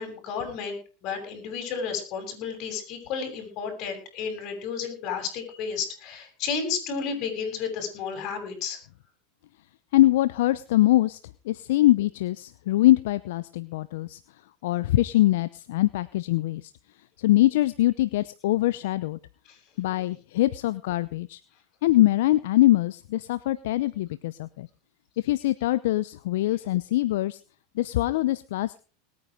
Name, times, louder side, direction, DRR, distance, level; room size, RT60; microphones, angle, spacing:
voice 1, 0.0-8.8 19.5-19.6, left 6 dB, 50° left, 6 dB, 7.5 m, -32 dB
voice 2, 9.9-11.2 11.5-14.2 14.6-16.7 17.2-19.2 19.8-21.4 21.8-24.7 25.2-27.4 27.8-28.8, left 15 dB, 75° left, 15 dB, 0.7 m, -23 dB
20.0 x 9.6 x 5.0 m, 0.36 s
supercardioid pair, 120°, 0 cm